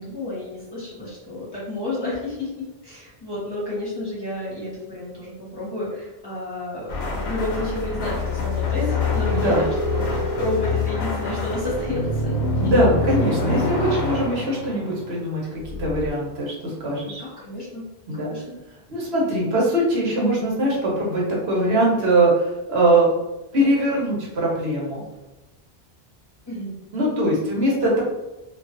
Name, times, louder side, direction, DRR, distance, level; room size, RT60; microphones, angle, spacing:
voice 1, 0.0-9.5 9.9-12.3 12.6-12.7 17.0-17.8 18.1-18.6 26.5-26.7, left 2 dB, 25° left, -8 dB, 0.9 m, -31 dB
sound 1, 6.9-15.2 15.6-16.1, left 3 dB, 80° left, 0.9 m, -25 dB
voice 2, 12.6-15.4 15.8-17.2 18.1-18.3 18.9-23.1 23.5-25.0 26.9-28.0, right 1 dB, 90° right, -4 dB, 1.1 m, -21 dB
2.4 x 2.4 x 2.4 m, 1.0 s
omnidirectional pair, 1.0 m